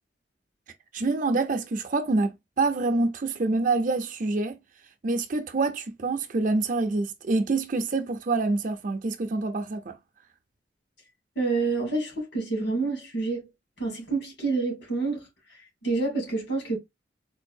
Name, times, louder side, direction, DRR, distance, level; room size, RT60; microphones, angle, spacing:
voice 1, 0.9-4.6 5.0-10.0, right 3 dB, 45° right, 0.5 m, -26 dB
voice 2, 11.4-13.5 13.8-15.3 15.8-16.8, right 3 dB, 85° left, 2.3 m, -28 dB
3.9 x 2.6 x 2.6 m
head